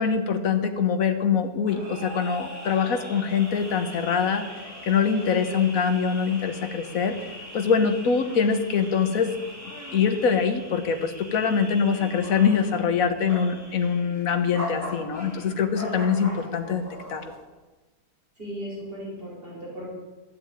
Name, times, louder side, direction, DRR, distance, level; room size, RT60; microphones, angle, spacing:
voice 1, 0.0-4.4 4.8-7.2 7.5-9.3 9.9-16.8 17.1-17.2, left 6 dB, 65° left, 7 dB, 1.6 m, -24 dB
sound 1, 1.7-17.4, left 1 dB, 10° right, 3.7 m, -40 dB
voice 2, 5.3-5.7 18.4-19.9, equal, 35° right, -5 dB, 4.9 m, -37 dB
12.5 x 9.3 x 8.9 m, 1.2 s
omnidirectional pair, 1.6 m